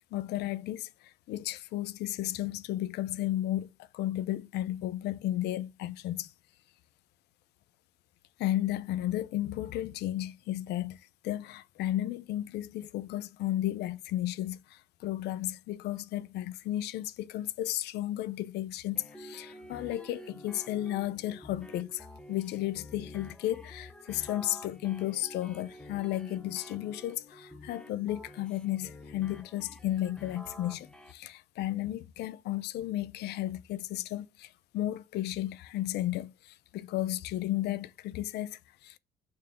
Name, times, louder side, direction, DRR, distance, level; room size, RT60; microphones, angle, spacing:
voice 1, 0.1-6.3 8.4-11.0 11.2-39.0, left 14 dB, 80° left, 0.7 m, -34 dB
sound 1, 19.0-31.1, left 1 dB, 5° left, 1.1 m, -49 dB
6.5 x 4.7 x 6.6 m
cardioid pair, 110°, 17 cm